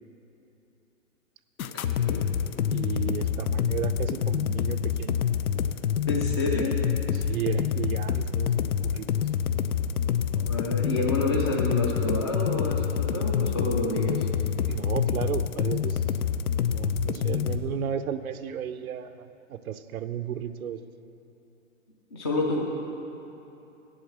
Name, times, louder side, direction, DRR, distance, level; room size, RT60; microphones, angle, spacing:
sound 1, 1.6-17.6, left 8 dB, 85° left, 0.6 m, -27 dB
voice 1, 1.7-2.2 6.1-6.8 10.4-14.3 17.2-17.3 22.1-22.6, left 2 dB, 20° left, -2 dB, 0.4 m, -29 dB
voice 2, 2.7-5.2 7.1-9.1 14.7-16.0 16.7-20.8, right 9 dB, 80° right, 10 dB, 0.7 m, -33 dB
8.5 x 7.8 x 6.4 m, 2.9 s
hypercardioid pair, 145°, 42 cm